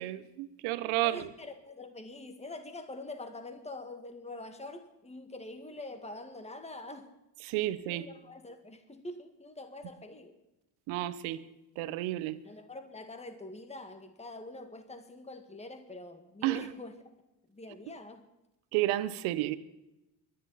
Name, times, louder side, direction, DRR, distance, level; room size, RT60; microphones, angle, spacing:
voice 1, 0.0-1.3 7.4-8.1 10.9-11.4 11.8-12.4 16.4-16.7 18.7-19.6, right 15 dB, 80° right, 1.1 m, -31 dB
voice 2, 1.0-7.1 7.9-10.4 12.4-17.0 17.5-18.3, left 2 dB, 15° left, 2.0 m, -45 dB
23.5 x 11.0 x 4.1 m
supercardioid pair, 70°, 48 cm